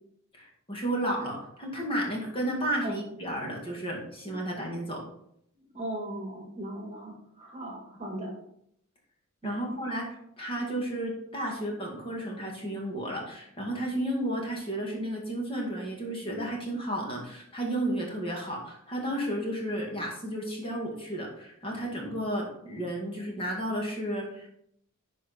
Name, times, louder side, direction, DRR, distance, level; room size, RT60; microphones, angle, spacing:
voice 1, 0.3-5.0 9.4-24.5, right 1 dB, 25° left, -1 dB, 2.1 m, -32 dB
voice 2, 5.6-8.3 9.4-9.6, right 1 dB, 30° right, 1 dB, 1.8 m, -38 dB
11.0 x 4.5 x 4.4 m, 0.73 s
head